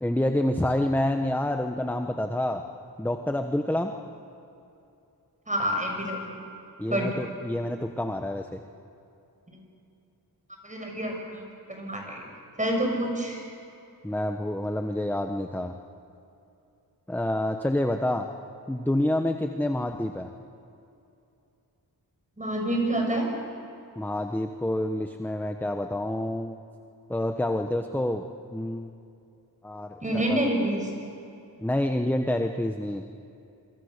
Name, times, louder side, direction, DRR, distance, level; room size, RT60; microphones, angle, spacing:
voice 1, 0.0-2.6 3.0-3.9 6.8-8.6 14.0-15.7 17.1-18.3 18.7-20.3 24.0-26.6 27.1-28.2 28.5-28.9 29.6-30.4 31.6-33.0, left 1 dB, 5° left, 5 dB, 1.0 m, -28 dB
voice 2, 5.5-6.2 6.9-7.1 10.6-12.3 12.6-13.4 22.4-23.3 30.0-30.9, right 1 dB, 20° right, 1 dB, 6.5 m, -27 dB
26.5 x 24.5 x 6.7 m, 2.7 s
wide cardioid pair, 110°, 38 cm